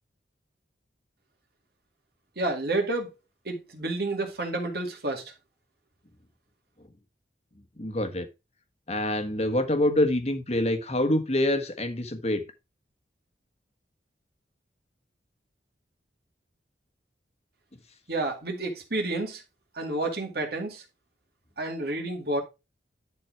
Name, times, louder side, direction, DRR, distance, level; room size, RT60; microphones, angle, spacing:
voice 1, 2.4-3.1 3.5-5.2 18.1-19.4 19.7-20.8 21.6-22.4, right 2 dB, 55° right, 2.2 m, -30 dB
voice 2, 7.8-8.3 8.9-12.4, left 1 dB, 35° left, 1.4 m, -26 dB
10.5 x 4.3 x 4.6 m
head